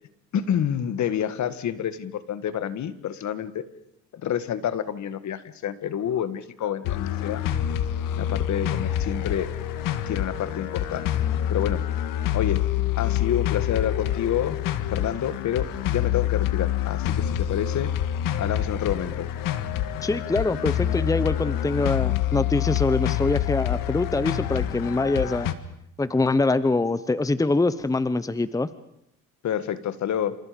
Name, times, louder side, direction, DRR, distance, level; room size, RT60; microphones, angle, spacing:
voice 1, 0.3-3.6 4.1-7.4 8.1-9.5 10.1-11.8 12.3-12.6 13.0-14.6 14.9-17.9 18.4-19.3 29.4-30.4, left 9 dB, 55° left, 12 dB, 1.9 m, -28 dB
sound 1, 6.8-25.5, left 11 dB, 75° left, 1.8 m, -26 dB
voice 2, 20.0-25.5 26.0-28.7, left 2 dB, 10° left, 14 dB, 1.0 m, -24 dB
29.0 x 27.5 x 5.3 m, 0.74 s
cardioid pair, 90°, 34 cm